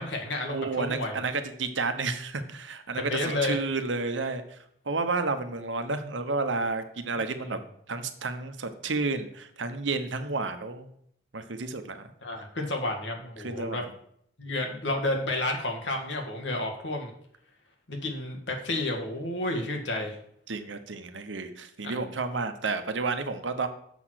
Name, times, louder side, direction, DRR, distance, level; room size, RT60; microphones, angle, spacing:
voice 1, 0.0-1.2 3.0-3.6 7.1-7.5 12.2-13.8 14.4-17.1 17.9-20.2 21.8-21.9, left 2 dB, 75° left, 2 dB, 1.8 m, -31 dB
voice 2, 0.5-4.6 4.8-7.6 7.9-10.9 11.3-12.1 13.4-13.8 20.5-23.7, right 3 dB, 85° right, 8 dB, 1.0 m, -31 dB
7.1 x 6.1 x 6.4 m, 0.69 s
head